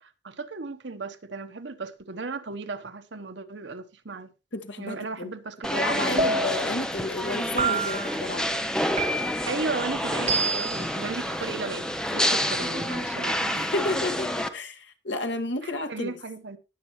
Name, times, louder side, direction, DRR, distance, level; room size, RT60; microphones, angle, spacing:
voice 1, 0.0-4.3 4.8-6.3 9.5-13.7 15.6-16.6, right 3 dB, 80° right, 1.1 m, -35 dB
voice 2, 4.5-5.3 5.7-8.5 13.5-16.1, left 2 dB, 80° left, 1.8 m, -31 dB
sound 1, 5.6-14.5, equal, 5° left, 0.7 m, -28 dB
sound 2, 6.2-6.8 7.6-8.2 9.0-9.5 10.3-10.8, right 3 dB, 35° right, 1.9 m, -27 dB
19.5 x 7.4 x 3.1 m
head